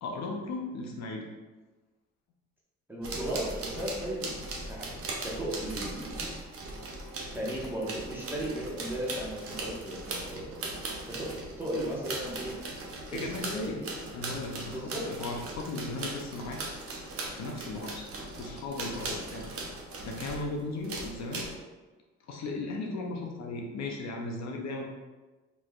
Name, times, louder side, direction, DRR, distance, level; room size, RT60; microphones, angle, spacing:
voice 1, 0.0-1.3 13.1-13.8 14.1-16.6 17.3-18.0 18.4-19.5 20.0-21.5 22.3-24.9, left 2 dB, 60° left, 0 dB, 0.6 m, -36 dB
voice 2, 2.9-4.4 4.7-4.9 5.2-6.2 7.3-10.5 11.1-11.3 11.6-12.6 13.1-13.9 14.6-15.1, right 1 dB, 5° right, -5 dB, 1.1 m, -36 dB
sound 1, 3.0-20.5 20.8-21.5, right 2 dB, 50° right, 0.8 m, -39 dB
3.8 x 3.2 x 2.4 m, 1.2 s
cardioid pair, 90°, 30 cm